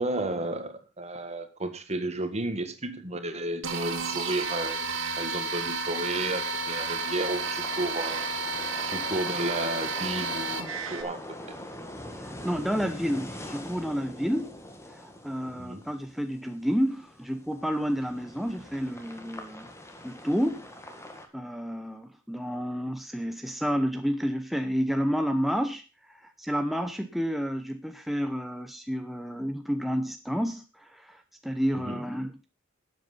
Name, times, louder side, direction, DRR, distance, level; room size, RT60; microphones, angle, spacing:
voice 1, 0.0-4.9 5.2-8.3 8.9-10.6 10.9-11.2 15.5-15.9 31.8-32.0, right 2 dB, 35° right, 9 dB, 1.8 m, -32 dB
sound 1, 3.6-11.0, right 4 dB, 90° right, 2.4 m, -31 dB
sound 2, 4.9-21.3, left 1 dB, 15° left, 1.9 m, -44 dB
voice 2, 12.1-14.5 14.9-19.7 20.0-20.7 21.3-25.8 26.1-32.5, equal, ahead, 6 dB, 0.7 m, -30 dB
12.5 x 8.1 x 5.5 m, 0.32 s
head